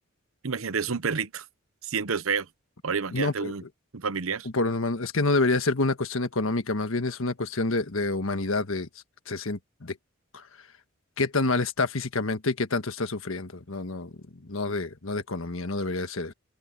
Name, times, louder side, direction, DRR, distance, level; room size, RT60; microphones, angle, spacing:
voice 1, 0.4-1.5 1.8-2.5 2.8-3.6 3.9-4.5, right 5 dB, 80° right, 0.9 m, -29 dB
voice 2, 3.1-3.5 4.5-8.9 9.3-9.9 10.3-10.4 11.2-14.1 14.5-16.3, left 3 dB, 75° left, 1.5 m, -27 dB
head